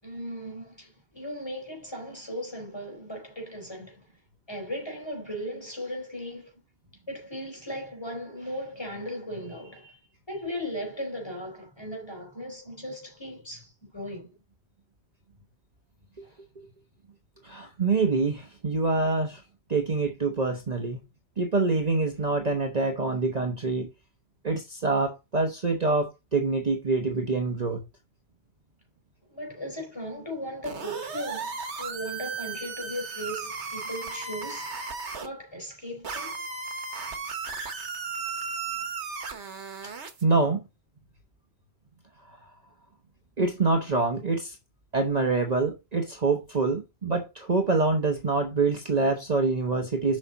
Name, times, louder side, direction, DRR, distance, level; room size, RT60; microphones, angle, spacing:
voice 1, 0.0-4.0 4.5-6.5 7.1-10.0 10.3-14.3 16.2-16.4 29.3-34.8 35.2-36.4, equal, 25° left, 4.5 m, -37 dB
voice 2, 17.4-19.4 19.7-21.0 21.4-23.9 24.4-27.8 40.2-40.6 43.4-44.5 44.9-50.2, right 3 dB, 40° right, 1.2 m, -25 dB
sound 1, 30.6-35.3 36.0-40.2, right 5 dB, 90° right, 1.5 m, -35 dB
7.9 x 6.0 x 4.0 m
omnidirectional pair, 1.1 m